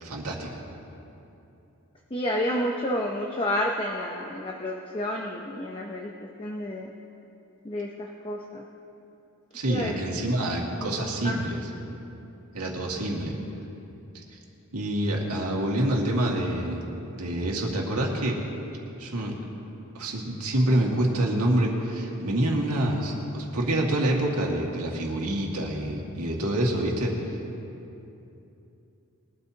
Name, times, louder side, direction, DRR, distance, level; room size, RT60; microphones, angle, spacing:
voice 1, 0.0-0.6 9.5-11.7 12.5-13.3 14.1-14.2 14.7-16.8 17.1-18.4 19.0-19.4 19.9-27.4, right 1 dB, 90° right, -1 dB, 2.0 m, -27 dB
voice 2, 2.1-6.1 6.4-6.9 7.6-8.6 9.7-10.3 10.8-11.4, left 1 dB, 25° left, -1 dB, 0.7 m, -30 dB
21.5 x 12.5 x 2.9 m, 2.9 s
head